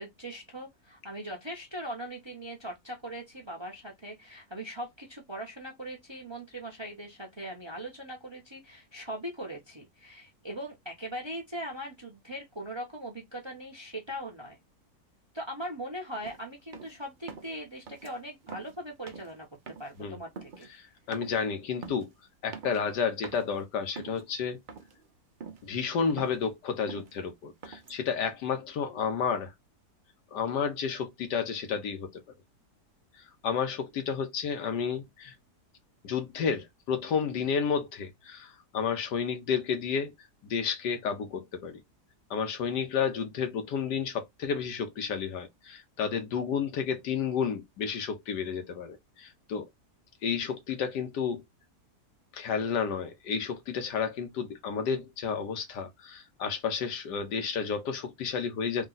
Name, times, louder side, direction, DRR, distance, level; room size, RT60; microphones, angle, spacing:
voice 1, 0.0-14.6 15.3-19.5 19.8-20.7, right 1 dB, 25° right, 0.7 m, -40 dB
sound 1, 16.2-16.4 16.7-17.0 17.3-17.6 17.9-18.1 18.4-18.8 19.1-19.3 19.7-20.0 20.3-20.7 21.1-21.4 21.8-22.1 22.5-23.0 23.2-23.5 23.9-24.3 24.7-25.1 25.4-25.7 25.9-26.4 26.9-27.2 27.6-28.0, right 5 dB, 65° right, 0.4 m, -44 dB
voice 2, 20.8-22.1 22.4-24.6 25.6-29.5 30.3-32.2 33.4-35.3 36.0-40.1 40.4-41.8 42.3-49.7 50.2-51.4 52.3-58.9, left 6 dB, 85° left, 1.5 m, -31 dB
3.7 x 2.3 x 3.8 m
omnidirectional pair, 1.8 m